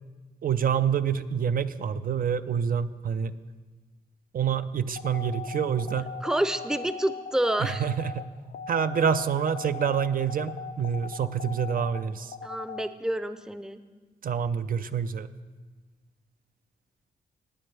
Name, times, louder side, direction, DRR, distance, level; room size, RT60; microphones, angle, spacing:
voice 1, 0.4-3.3 4.3-6.1 7.6-8.2 8.7-12.3 14.2-15.3, right 7 dB, 55° right, 12 dB, 0.5 m, -27 dB
sound 1, 4.9-12.8, left 5 dB, 75° left, 0.7 m, -39 dB
voice 2, 6.2-7.8 12.4-13.8, right 1 dB, 5° right, 11 dB, 0.6 m, -28 dB
19.0 x 7.8 x 3.3 m, 1.4 s
cardioid pair, 80°, 17 cm